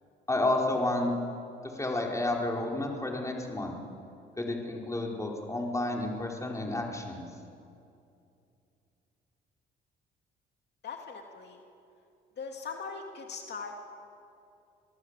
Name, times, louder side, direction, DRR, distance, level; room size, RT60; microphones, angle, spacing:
voice 1, 0.3-1.1 1.6-3.8 4.4-7.2, left 2 dB, 15° left, 0 dB, 4.6 m, -31 dB
voice 2, 10.8-11.6 12.4-13.9, left 5 dB, 60° left, 2 dB, 2.5 m, -40 dB
27.5 x 18.5 x 8.2 m, 2.6 s
cardioid pair, 90°, 20 cm